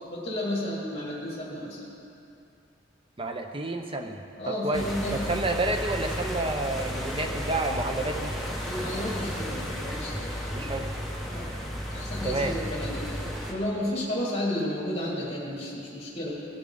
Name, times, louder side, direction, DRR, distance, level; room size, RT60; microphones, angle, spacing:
voice 1, 0.1-1.8 4.4-5.3 8.7-10.8 11.2-11.6 11.9-13.2 13.5-16.4, left 1 dB, 30° left, -5 dB, 2.2 m, -32 dB
voice 2, 3.2-8.3 10.5-10.9 12.2-12.5, right 2 dB, 30° right, 4 dB, 0.7 m, -30 dB
sound 1, 4.7-13.5, equal, ahead, 1.1 m, -33 dB
17.5 x 7.1 x 3.9 m, 2.7 s
head